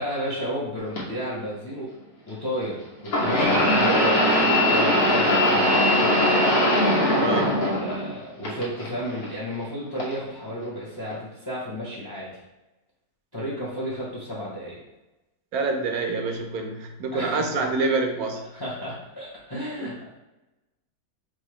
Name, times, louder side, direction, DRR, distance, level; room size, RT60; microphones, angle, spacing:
voice 1, 0.0-1.9 2.3-6.2 7.1-12.3 13.3-14.8 17.1-17.8 18.5-20.2, equal, 20° left, -6 dB, 0.8 m, -32 dB
sound 1, 1.0-1.1 3.1-8.1 8.4-9.2 10.0-10.1 11.1-11.2, left 1 dB, 90° left, 1.6 m, -20 dB
voice 2, 7.2-7.5 15.5-18.5 19.8-19.9, right 3 dB, 75° right, 3 dB, 1.1 m, -26 dB
4.8 x 2.6 x 3.1 m, 0.99 s
omnidirectional pair, 1.6 m